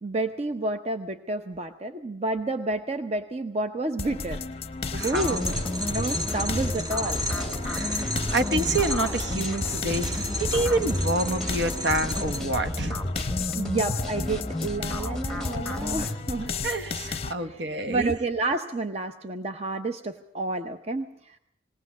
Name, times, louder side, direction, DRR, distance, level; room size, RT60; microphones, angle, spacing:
voice 1, 0.0-4.4 4.9-5.5 5.8-7.6 13.5-16.5 17.4-21.4, right 2 dB, 35° right, 7 dB, 0.7 m, -30 dB
sound 1, 4.0-17.3, left 4 dB, 35° left, 0.7 m, -34 dB
voice 2, 4.9-5.4 7.6-13.0 16.6-18.1, right 2 dB, 65° right, 9 dB, 1.1 m, -28 dB
sound 2, 5.0-12.4, equal, 20° right, 1.5 m, -33 dB
sound 3, 5.1-16.2, left 1 dB, 5° left, 1.1 m, -33 dB
20.0 x 18.0 x 7.2 m, 0.74 s
head